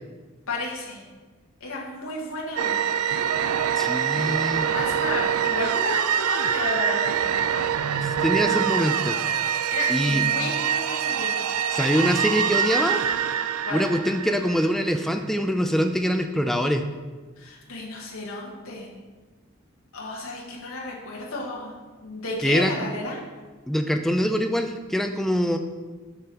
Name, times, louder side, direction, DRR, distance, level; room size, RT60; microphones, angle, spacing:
voice 1, 0.5-1.0 1.6-2.8 4.7-7.2 9.7-11.3 13.6-13.8 17.4-18.9 19.9-21.8 22.0-23.2, left 2 dB, 70° left, -3 dB, 1.4 m, -32 dB
sound 1, 2.6-15.1, right 8 dB, 80° right, 0.4 m, -25 dB
voice 2, 3.8-4.7 7.9-9.2 9.9-10.2 11.7-13.0 13.7-16.8 22.4-22.8 23.7-25.6, equal, ahead, 6 dB, 0.3 m, -24 dB
6.9 x 5.4 x 4.3 m, 1.4 s
head